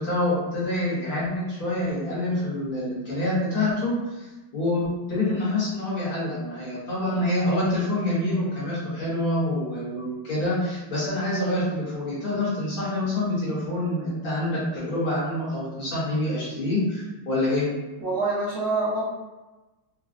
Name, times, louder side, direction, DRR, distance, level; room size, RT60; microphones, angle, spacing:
voice 1, 0.0-4.3 4.5-17.6, left 1 dB, 55° left, -9 dB, 1.3 m, -26 dB
voice 2, 18.0-19.0, right 3 dB, 60° right, -11 dB, 0.8 m, -25 dB
4.0 x 2.0 x 2.5 m, 1.1 s
omnidirectional pair, 2.1 m